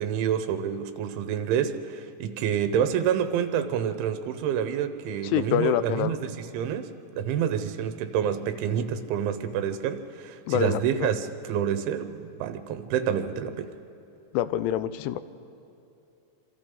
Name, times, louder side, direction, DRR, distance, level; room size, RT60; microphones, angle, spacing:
voice 1, 0.0-13.7, right 8 dB, 85° right, 9 dB, 3.4 m, -28 dB
voice 2, 5.2-6.2 10.5-11.1 14.3-15.2, left 11 dB, 85° left, 13 dB, 3.0 m, -26 dB
26.5 x 26.0 x 3.9 m, 2.8 s
omnidirectional pair, 5.4 m